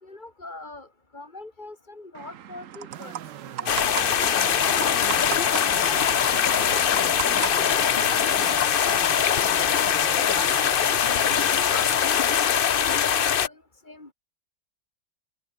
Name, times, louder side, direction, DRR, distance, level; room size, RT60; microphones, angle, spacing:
voice 1, 0.0-3.2 3.6-3.8 4.4-9.4 10.0-11.4 11.7-14.1, left 2 dB, 25° left, 3.4 m, -43 dB
sound 1, 2.1-8.6, right 10 dB, 55° right, 1.0 m, -37 dB
sound 2, 2.9-12.0, right 11 dB, 75° right, 1.6 m, -43 dB
sound 3, 3.7-13.5, left 8 dB, 65° left, 0.5 m, -22 dB
open air
omnidirectional pair, 1.9 m